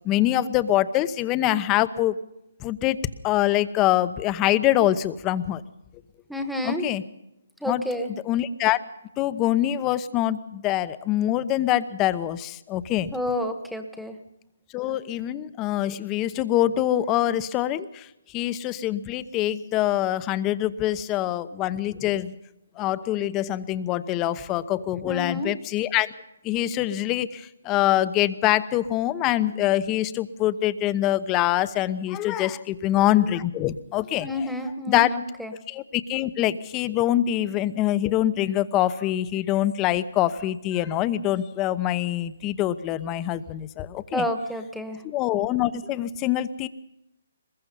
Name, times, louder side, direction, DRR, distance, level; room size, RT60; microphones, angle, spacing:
voice 1, 0.0-2.2 2.6-5.6 6.6-7.0 7.7-7.8 8.3-8.8 9.2-13.1 14.7-22.3 22.8-26.1 26.4-34.3 34.9-35.1 35.7-44.2 45.0-46.7, left 13 dB, 20° left, 15 dB, 0.9 m, -24 dB
voice 2, 6.3-6.9 7.6-8.1 13.1-14.2 25.0-25.5 34.2-35.5 44.1-45.0, left 1 dB, ahead, 7 dB, 1.5 m, -29 dB
23.5 x 21.0 x 5.5 m, 0.86 s
hypercardioid pair, 145°, 0 cm